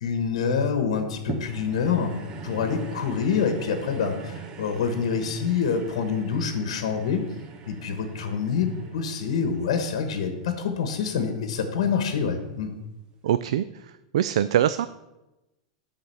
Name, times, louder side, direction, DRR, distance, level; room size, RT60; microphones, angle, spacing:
voice 1, 0.0-2.2 2.4-7.2 7.7-12.7, left 6 dB, 70° left, 6 dB, 1.2 m, -26 dB
sound 1, 1.3-11.8 12.4-12.5, right 4 dB, 25° right, 0.7 m, -41 dB
voice 2, 13.2-14.9, right 11 dB, 75° right, 13 dB, 0.3 m, -24 dB
10.5 x 4.1 x 6.9 m, 0.99 s
supercardioid pair, 155°, 3 cm